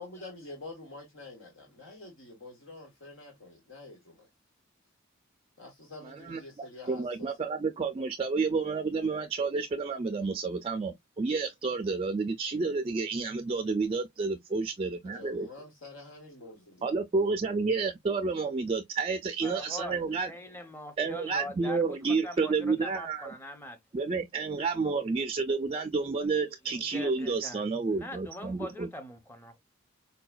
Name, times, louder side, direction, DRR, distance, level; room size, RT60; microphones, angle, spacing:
voice 1, 0.0-4.3 5.6-7.3 15.0-16.9, left 2 dB, 85° left, 1.3 m, -47 dB
voice 2, 6.0-6.4 6.9-15.5 16.8-20.3 21.0-23.3 23.9-28.9, right 4 dB, 30° right, 0.3 m, -30 dB
voice 3, 19.4-23.8 26.5-29.6, equal, 10° left, 0.7 m, -43 dB
4.6 x 2.2 x 2.2 m
head